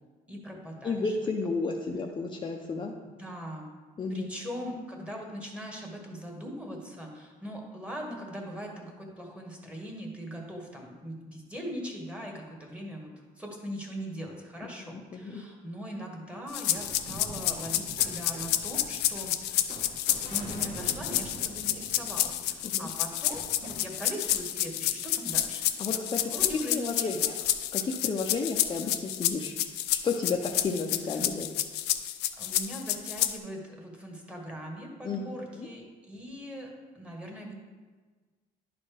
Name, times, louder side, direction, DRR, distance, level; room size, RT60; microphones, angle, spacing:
voice 1, 0.3-1.1 3.0-3.7 4.1-13.1 13.4-19.5 20.3-25.7 26.3-27.2 32.4-36.7 36.9-37.5, equal, 5° right, 0 dB, 1.5 m, -40 dB
voice 2, 0.8-2.9 4.0-4.3 14.6-15.4 22.6-22.9 25.8-26.3 26.7-27.3 27.7-29.5 29.9-31.5 35.0-35.2 35.6-35.7, left 4 dB, 30° left, 1 dB, 0.6 m, -32 dB
sound 1, 16.5-33.4, left 13 dB, 85° left, 0.5 m, -29 dB
sound 2, 16.7-23.8, right 2 dB, 40° right, 1.5 m, -45 dB
11.0 x 4.2 x 3.4 m, 1.4 s
cardioid pair, 110°, 17 cm